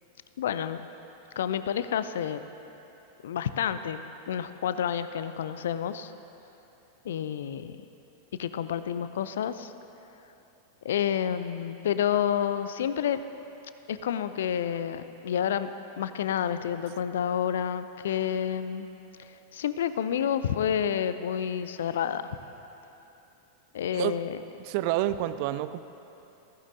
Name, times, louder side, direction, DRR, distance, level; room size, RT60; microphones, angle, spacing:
voice 1, 0.4-0.8 1.4-2.4 3.2-6.1 7.0-7.8 8.4-9.7 10.8-13.2 13.9-15.7 16.0-18.9 19.2-22.2 23.7-24.4, left 9 dB, 60° left, 12 dB, 0.4 m, -29 dB
voice 2, 24.6-25.8, right 14 dB, 45° right, 13 dB, 0.3 m, -28 dB
15.0 x 14.5 x 2.7 m, 2.9 s
figure-of-eight pair, 90°, 0 cm